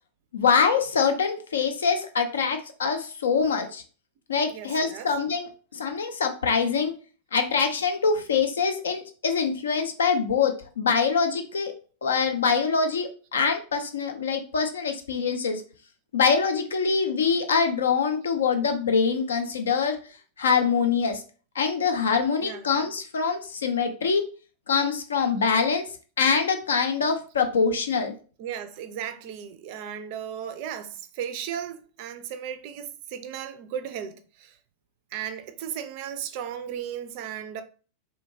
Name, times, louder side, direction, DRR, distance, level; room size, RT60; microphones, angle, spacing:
voice 1, 0.3-3.8 4.3-6.9 7.3-11.7 12.0-15.6 16.1-20.0 20.4-21.2 21.6-24.3 24.7-25.9 26.2-28.1, left 5 dB, 65° left, 0.4 m, -24 dB
voice 2, 4.5-5.1 22.4-22.6 28.4-34.6 35.1-37.6, right 9 dB, 45° right, 0.3 m, -35 dB
2.7 x 2.1 x 2.6 m
figure-of-eight pair, 90°, 0 cm